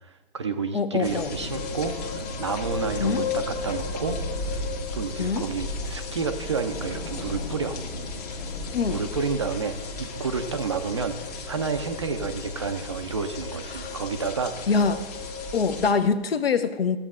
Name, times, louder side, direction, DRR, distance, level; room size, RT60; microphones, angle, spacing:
voice 1, 0.0-4.2 4.4-4.7 4.9-7.8 8.9-14.7, right 5 dB, 30° right, 7 dB, 0.4 m, -30 dB
voice 2, 0.7-1.3 3.0-3.2 5.2-5.5 8.7-9.0 13.7-14.0 14.7-15.0 15.5-17.0, left 5 dB, 60° left, 12 dB, 0.8 m, -24 dB
sound 1, 1.0-15.9, left 3 dB, 35° left, 1.2 m, -34 dB
15.5 x 8.1 x 2.4 m, 1.1 s
figure-of-eight pair, 130°, 33 cm